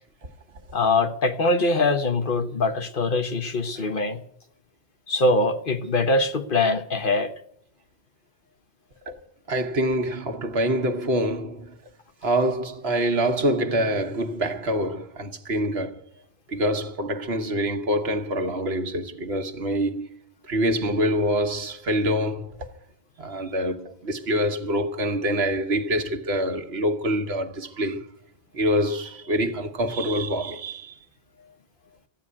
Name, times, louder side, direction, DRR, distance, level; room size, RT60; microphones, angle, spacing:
voice 1, 0.7-4.2 5.1-7.3, left 2 dB, 55° left, 1.3 m, -23 dB
voice 2, 9.5-11.7 12.2-16.0 16.5-20.1 20.5-22.7 23.2-28.1 28.5-31.0, equal, 80° right, 1.5 m, -25 dB
14.5 x 8.9 x 9.6 m
omnidirectional pair, 1.1 m